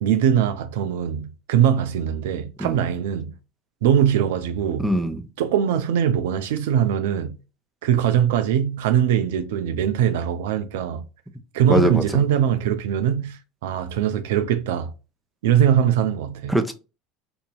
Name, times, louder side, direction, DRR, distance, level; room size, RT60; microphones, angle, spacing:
voice 1, 0.0-3.3 3.8-4.9 5.4-7.4 7.8-11.1 11.5-14.9 15.4-16.6, right 9 dB, 70° right, 0.4 m, -21 dB
voice 2, 4.8-5.2 11.7-12.0 16.5-16.7, equal, ahead, 0.6 m, -21 dB
2.8 x 2.6 x 2.3 m
hypercardioid pair, 75°, 0 cm